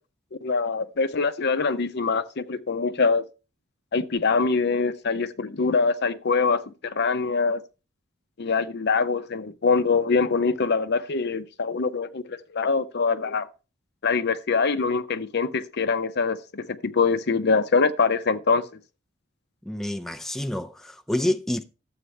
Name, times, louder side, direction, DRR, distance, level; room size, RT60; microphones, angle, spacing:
voice 1, 0.4-3.2 3.9-7.6 8.4-13.5 14.0-18.7, left 4 dB, 55° left, 0.7 m, -24 dB
voice 2, 19.7-21.6, left 1 dB, ahead, 0.4 m, -28 dB
12.5 x 8.0 x 3.2 m
head